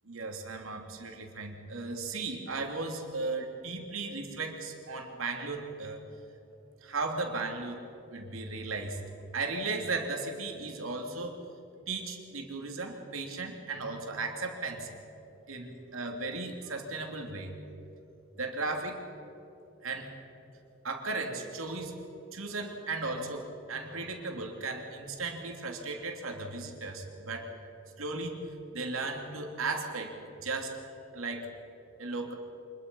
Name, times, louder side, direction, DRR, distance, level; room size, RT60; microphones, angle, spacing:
voice 1, 0.1-6.0 6.8-7.8 8.1-9.0 9.3-11.4 11.9-14.9 15.5-17.5 18.4-19.0 19.8-20.1 20.8-21.9 22.3-27.5 28.0-28.4 28.7-30.7 31.1-31.5 32.0-32.3, right 3 dB, 90° right, 2 dB, 3.1 m, -36 dB
25.0 x 21.5 x 5.6 m, 2.9 s
head